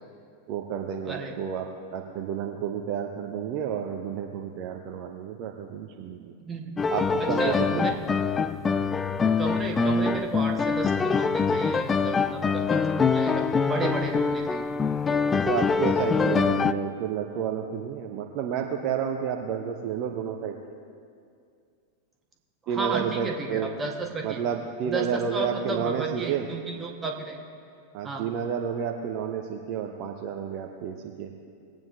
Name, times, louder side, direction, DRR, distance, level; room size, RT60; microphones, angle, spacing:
voice 1, 0.5-6.3 6.9-7.6 15.3-20.6 22.7-23.7 24.2-26.4 27.9-31.3, right 8 dB, 40° right, 2 dB, 0.7 m, -31 dB
voice 2, 1.0-1.4 6.4-6.8 7.2-7.9 9.4-14.6 22.7-24.4 24.8-27.4 28.0-28.3, right 3 dB, 20° right, 2 dB, 1.4 m, -33 dB
sound 1, 6.8-16.7, left 5 dB, 20° left, 0.3 m, -24 dB
20.0 x 8.8 x 3.2 m, 2.3 s
figure-of-eight pair, 90°, 0 cm